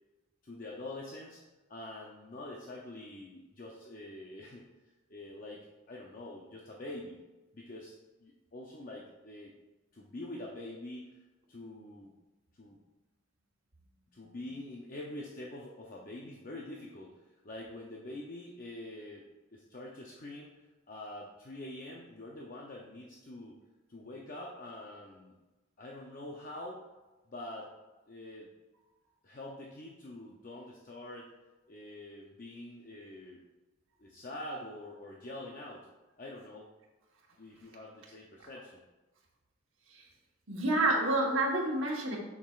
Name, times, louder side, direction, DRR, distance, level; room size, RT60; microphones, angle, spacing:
voice 1, 0.4-1.4 1.7-4.7 5.1-5.6 5.9-7.2 7.5-7.9 8.2-9.5 9.9-11.2 11.5-12.1 12.5-12.8 14.1-19.3 19.5-23.6 23.9-25.3 25.8-26.8 27.3-27.7 28.1-28.5 29.2-31.3 31.7-33.4 34.0-35.9 36.2-36.7 37.4-38.8, left 1 dB, 40° left, -2 dB, 0.6 m, -45 dB
voice 2, 40.5-42.2, right 2 dB, 75° right, -2 dB, 1.3 m, -28 dB
7.3 x 5.8 x 2.4 m, 1.1 s
head